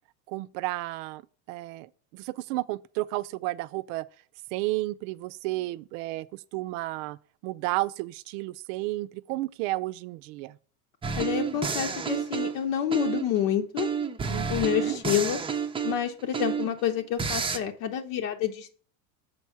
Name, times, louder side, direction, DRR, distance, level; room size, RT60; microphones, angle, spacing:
voice 1, 0.3-1.2 1.5-4.1 4.5-7.2 7.4-10.6 14.3-15.0, right 18 dB, 65° right, 0.6 m, -32 dB
sound 1, 11.0-13.4 13.8-16.8 17.2-17.6, right 6 dB, 10° right, 0.6 m, -30 dB
voice 2, 11.2-13.9 14.5-15.4 15.8-18.7, left 10 dB, 70° left, 1.1 m, -28 dB
7.0 x 4.7 x 5.6 m
supercardioid pair, 115°, 43 cm